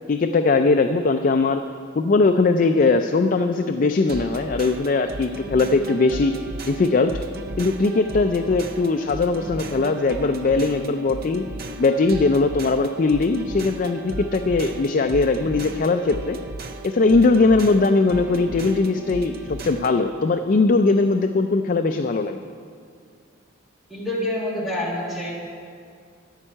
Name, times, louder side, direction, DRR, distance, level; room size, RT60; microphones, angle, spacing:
voice 1, 0.1-1.6 1.9-6.3 6.7-7.1 7.6-11.4 11.8-16.4 16.8-22.4, left 3 dB, 40° left, 7 dB, 0.4 m, -20 dB
sound 1, 4.1-20.1, right 2 dB, 45° right, 0.6 m, -35 dB
voice 2, 23.9-25.3, left 1 dB, ahead, -5 dB, 1.9 m, -27 dB
13.0 x 5.5 x 8.8 m, 2.3 s
head